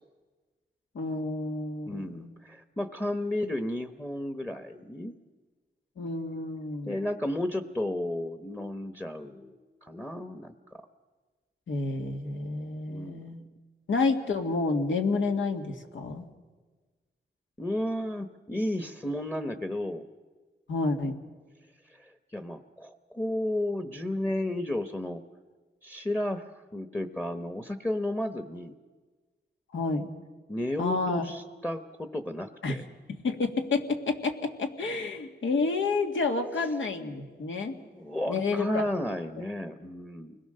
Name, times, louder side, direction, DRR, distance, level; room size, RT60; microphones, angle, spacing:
voice 1, 0.9-2.3 6.0-7.0 11.7-13.4 13.9-16.2 20.7-21.2 29.7-30.1 30.8-31.2 32.6-32.8 33.1-37.8 38.3-38.8, left 3 dB, 85° left, 4 dB, 2.1 m, -29 dB
voice 2, 1.9-5.1 6.8-10.9 12.9-13.3 17.6-20.1 21.9-25.2 25.8-28.7 30.5-32.9 37.9-40.4, left 1 dB, 10° left, 8 dB, 1.0 m, -33 dB
29.5 x 21.5 x 6.7 m, 1.4 s
wide cardioid pair, 125°, 19 cm